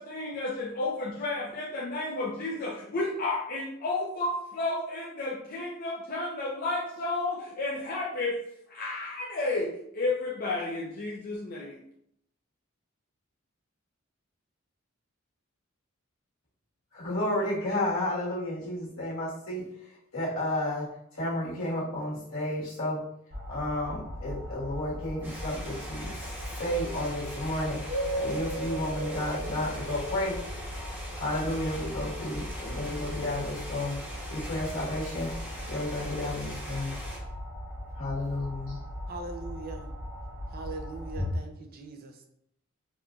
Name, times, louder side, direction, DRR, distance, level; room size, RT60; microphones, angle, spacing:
voice 1, 0.0-8.4 8.7-11.8, left 2 dB, 45° left, -4 dB, 0.5 m, -32 dB
voice 2, 16.9-19.6 20.1-23.0 23.5-26.3 26.6-27.8 28.2-30.4 31.2-34.0 34.3-35.3 35.7-36.9 38.0-38.8, left 1 dB, 75° left, -7 dB, 1.4 m, -32 dB
sound 1, 23.3-41.3, equal, 85° right, 1.2 m, -38 dB
sound 2, 25.2-37.2, equal, 10° right, 0.9 m, -42 dB
voice 3, 39.1-39.9 40.5-42.3, right 3 dB, 45° right, 4 dB, 0.4 m, -41 dB
4.1 x 2.5 x 2.3 m, 0.73 s
head